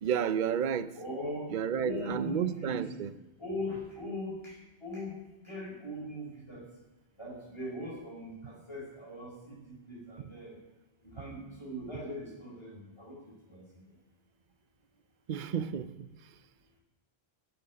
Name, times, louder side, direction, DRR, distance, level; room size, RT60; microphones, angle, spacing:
voice 1, 0.0-0.9 1.5-3.1 15.3-16.1, right 8 dB, 50° right, 0.7 m, -31 dB
voice 2, 1.0-1.5 1.8-2.9 3.4-4.3 4.8-5.1 5.5-6.6 7.2-8.3 8.7-9.3 9.9-10.5 11.2-13.2 13.5-13.6, left 1 dB, 25° left, 4.6 m, -39 dB
13.5 x 6.3 x 9.6 m
omnidirectional pair, 1.1 m